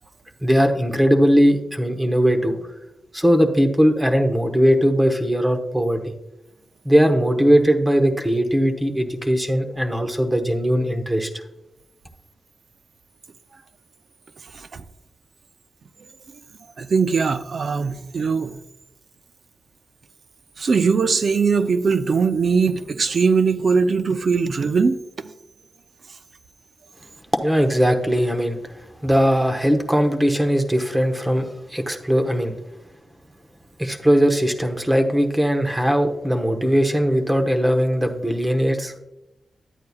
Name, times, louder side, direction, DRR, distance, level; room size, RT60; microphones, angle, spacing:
voice 1, 0.4-2.6 3.1-6.1 6.8-11.3 27.4-28.6 29.0-32.6 33.8-39.0, equal, 10° right, 4 dB, 1.0 m, -19 dB
voice 2, 16.8-18.6 20.6-25.0, right 5 dB, 55° right, 10 dB, 0.5 m, -20 dB
11.0 x 8.6 x 2.3 m, 0.91 s
wide cardioid pair, 125°, 0 cm